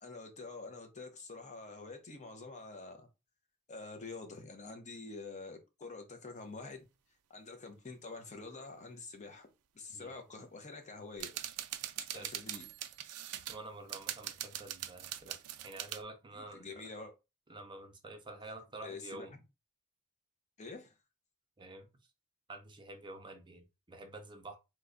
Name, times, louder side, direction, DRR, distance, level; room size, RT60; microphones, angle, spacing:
voice 1, 0.0-3.1 3.7-6.8 7.3-9.5 9.7-11.3 12.0-12.7 16.3-17.1 18.8-19.4 20.6-20.9, left 3 dB, 30° left, 0.7 m, -47 dB
sound 1, 11.2-13.6 13.9-16.0, right 12 dB, 75° right, 0.4 m, -42 dB
voice 2, 13.5-15.4 15.6-16.8 17.5-19.3 21.6-21.9 22.5-24.6, right 2 dB, 20° right, 0.5 m, -48 dB
3.0 x 2.2 x 3.8 m
head